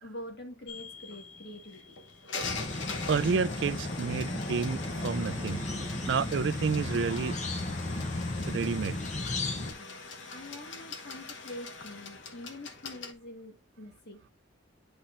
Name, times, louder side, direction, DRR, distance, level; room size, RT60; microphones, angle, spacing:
voice 1, 0.0-2.0 9.7-10.0 10.3-14.2, left 1 dB, 60° left, 1.8 m, -45 dB
sound 1, 0.7-13.1, left 4 dB, 80° left, 1.1 m, -43 dB
sound 2, 2.4-9.7, left 2 dB, 40° left, 0.8 m, -34 dB
voice 2, 3.1-5.6 6.1-7.4 8.4-9.0, right 5 dB, 70° right, 0.4 m, -30 dB
sound 3, 4.4-6.5, right 1 dB, 10° right, 0.6 m, -46 dB
10.5 x 4.4 x 2.6 m
head